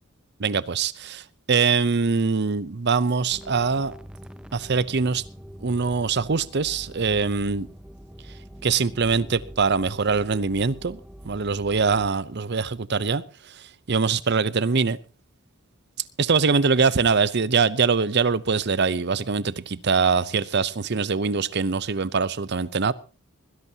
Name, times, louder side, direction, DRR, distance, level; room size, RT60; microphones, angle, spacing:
voice 1, 0.4-3.9 4.5-5.2 5.6-7.7 8.6-11.0 11.2-15.0 16.2-22.9, right 5 dB, 50° right, 0.7 m, -23 dB
sound 1, 3.3-12.1, equal, 5° right, 0.7 m, -43 dB
21.0 x 16.5 x 2.9 m
head